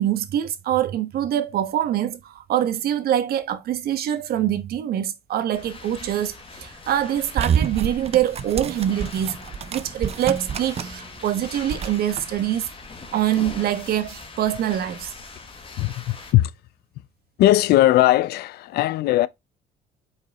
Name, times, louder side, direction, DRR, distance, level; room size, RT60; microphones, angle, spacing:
voice 1, 0.0-9.4 9.7-12.7 13.1-15.1, right 11 dB, 65° right, 1.2 m, -24 dB
sound 1, 5.5-16.3, left 3 dB, 30° left, 1.6 m, -41 dB
sound 2, 7.4-11.1 11.3-12.2, right 8 dB, 35° right, 0.7 m, -28 dB
voice 2, 15.8-16.5 17.4-19.3, left 15 dB, 70° left, 0.5 m, -19 dB
5.3 x 4.7 x 4.1 m
cardioid pair, 110°, 17 cm